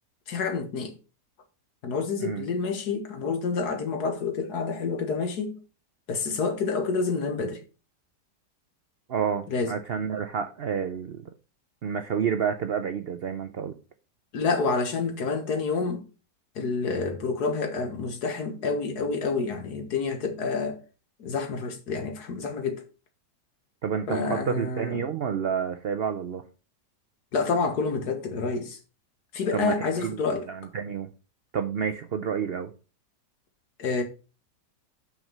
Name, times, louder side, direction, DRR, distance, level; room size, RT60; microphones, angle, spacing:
voice 1, 0.3-0.9 1.8-5.6 6.1-7.6 9.5-9.7 14.3-16.0 16.6-20.8 21.2-22.8 24.1-25.0 27.3-28.8 29.3-30.5 33.8-34.0, left 4 dB, 70° left, 1.8 m, -28 dB
voice 2, 9.1-11.2 11.8-13.8 23.8-26.4 29.5-31.1 31.5-32.7, right 7 dB, 80° right, 0.5 m, -29 dB
6.1 x 5.1 x 5.4 m
omnidirectional pair, 1.8 m